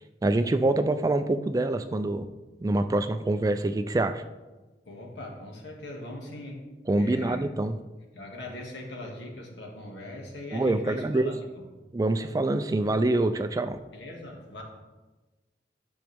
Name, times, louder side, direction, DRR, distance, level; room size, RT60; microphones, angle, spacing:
voice 1, 0.2-2.2 2.6-4.2 6.9-7.7 10.5-11.3 11.9-13.8, right 2 dB, 20° right, 9 dB, 0.3 m, -25 dB
voice 2, 4.9-6.6 7.0-7.4 8.1-11.6 13.9-14.6, left 1 dB, 90° left, 0 dB, 1.9 m, -40 dB
11.0 x 6.3 x 3.5 m, 1.2 s
head